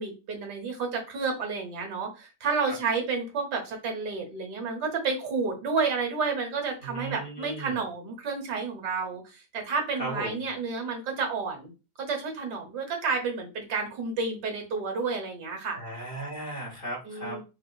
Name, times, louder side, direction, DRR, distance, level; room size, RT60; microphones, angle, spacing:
voice 1, 0.0-11.7 12.0-15.8 17.0-17.4, right 4 dB, 90° right, 2 dB, 1.7 m, -30 dB
voice 2, 6.8-7.8 10.0-10.4 15.7-17.4, right 1 dB, 40° left, -2 dB, 1.1 m, -36 dB
4.8 x 2.4 x 2.3 m, 0.29 s
omnidirectional pair, 1.8 m